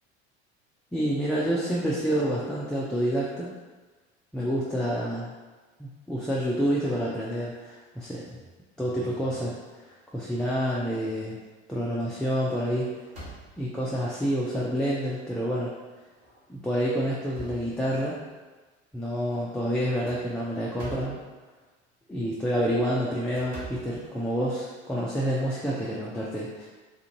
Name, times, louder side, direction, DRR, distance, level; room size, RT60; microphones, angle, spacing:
voice 1, 0.9-3.5 4.3-5.3 5.8-8.4 8.8-9.5 10.1-11.4 11.7-12.9 13.6-15.7 16.5-18.2 18.9-21.2 22.1-26.7, equal, ahead, -6 dB, 0.4 m, -28 dB
sound 1, 11.7-12.0 12.3-13.9 14.6-14.7 15.1-15.2 16.1-16.4 16.8-18.3 19.8-21.3 22.4-24.7, right 1 dB, 70° right, 1.5 m, -45 dB
3.5 x 2.5 x 2.8 m, 1.3 s
hypercardioid pair, 70°, 34 cm